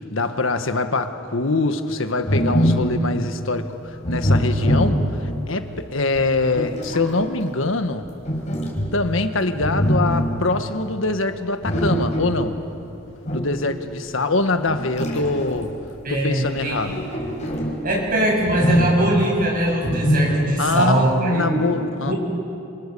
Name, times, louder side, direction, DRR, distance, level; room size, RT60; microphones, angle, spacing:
voice 1, 0.1-8.1 8.9-12.6 13.3-15.7 16.1-17.1 20.6-22.1, left 3 dB, 75° left, 8 dB, 1.6 m, -23 dB
sound 1, 2.2-3.0 4.0-5.4 6.1-7.1 8.2-9.2 9.6-10.4 11.6-12.4 13.2-13.6 14.7-15.8 16.6-17.8 18.4-19.2 19.8-20.7, equal, 35° left, 5.1 m, -23 dB
voice 2, 16.0-16.9 17.8-21.6 22.0-22.1, right 1 dB, 45° right, -1 dB, 7.5 m, -21 dB
29.5 x 28.5 x 7.0 m, 2.8 s
head